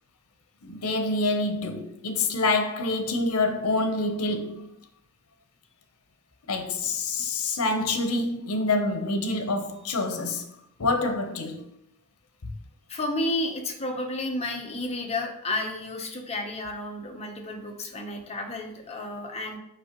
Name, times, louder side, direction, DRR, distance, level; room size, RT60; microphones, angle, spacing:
voice 1, 0.6-4.7 6.5-10.5 10.8-11.7 12.4-12.5, left 2 dB, 80° left, 0.8 m, -27 dB
voice 2, 12.9-19.6, left 1 dB, 30° left, 0.9 m, -31 dB
6.1 x 5.5 x 3.0 m
head